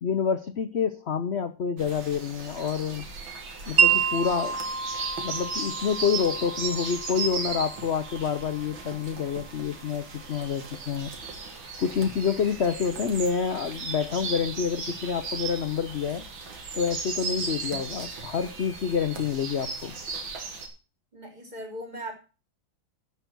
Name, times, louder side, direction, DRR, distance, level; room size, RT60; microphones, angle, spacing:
voice 1, 0.0-3.1 3.7-4.6 5.2-11.1 11.8-16.3 16.7-20.0, left 6 dB, 90° left, 0.5 m, -28 dB
sound 1, 1.8-20.7, right 4 dB, 80° right, 2.8 m, -37 dB
Wind chime, 3.8-9.9, right 7 dB, 40° right, 1.3 m, -29 dB
voice 2, 21.1-22.2, right 1 dB, 20° right, 3.3 m, -38 dB
12.0 x 6.0 x 6.1 m
omnidirectional pair, 2.1 m